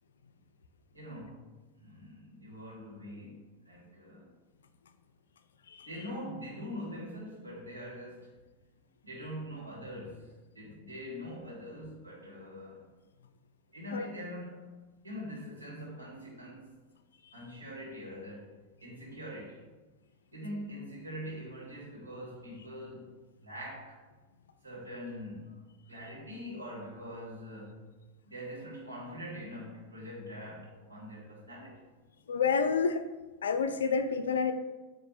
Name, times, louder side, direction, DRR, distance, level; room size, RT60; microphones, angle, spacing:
voice 1, 0.9-1.5 1.8-4.3 5.8-8.4 9.0-12.9 13.7-14.8 15.0-16.7 17.3-19.7 20.3-24.0 24.6-27.9 28.3-31.8, equal, 80° right, -5 dB, 1.4 m, -43 dB
voice 2, 32.3-33.1 33.4-34.5, left 5 dB, 65° left, 9 dB, 0.3 m, -29 dB
4.5 x 2.5 x 4.0 m, 1.2 s
figure-of-eight pair, 90°, 0 cm